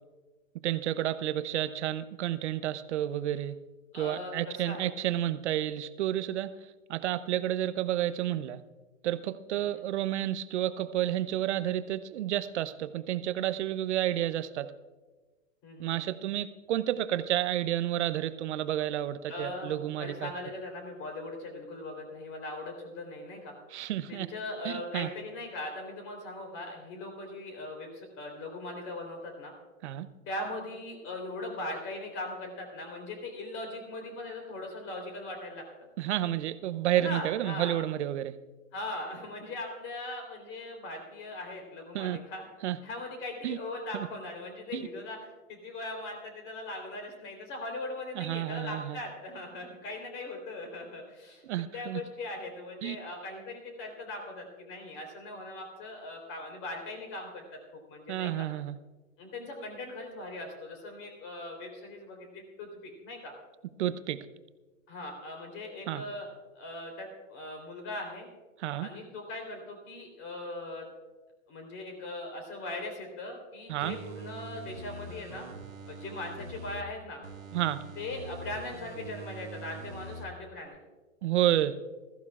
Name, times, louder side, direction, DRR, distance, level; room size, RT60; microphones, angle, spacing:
voice 1, 0.6-3.6 3.9-6.5 6.9-8.6 9.0-14.7 15.8-20.3 23.7-24.3 24.6-25.1 29.8-30.1 36.0-38.3 41.9-42.2 42.6-42.8 43.4-43.6 43.9-44.1 44.7-44.8 48.2-49.0 51.4-52.0 52.8-53.0 58.1-58.8 63.8-64.3 65.9-66.0 68.6-68.9 73.7-74.0 77.5-77.8 81.2-81.8, right 12 dB, 60° right, 13 dB, 0.8 m, -30 dB
voice 2, 3.9-5.0 9.5-9.8 15.6-16.0 19.3-23.5 24.1-29.5 30.3-35.6 36.9-37.8 38.7-42.4 42.8-45.2 45.5-51.4 51.7-58.5 59.2-63.3 64.9-66.3 66.6-68.3 68.8-70.9 71.5-75.5 75.9-77.2 78.0-80.8, left 2 dB, 30° left, 3 dB, 3.6 m, -40 dB
sound 1, 73.8-76.8 77.2-80.2 80.6-80.7, right 3 dB, 90° right, 1.8 m, -44 dB
20.5 x 14.5 x 2.4 m, 1.2 s
hypercardioid pair, 125°, 40 cm